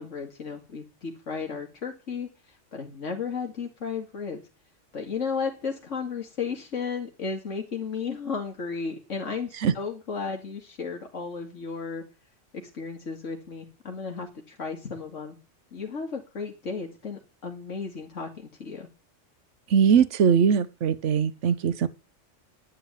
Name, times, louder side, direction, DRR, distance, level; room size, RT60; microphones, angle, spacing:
voice 1, 0.0-4.4 4.9-12.0 12.7-15.4 15.7-18.9, left 5 dB, 80° left, 2.6 m, -34 dB
voice 2, 19.7-21.9, right 7 dB, 75° right, 1.3 m, -21 dB
12.0 x 9.7 x 9.0 m
omnidirectional pair, 1.3 m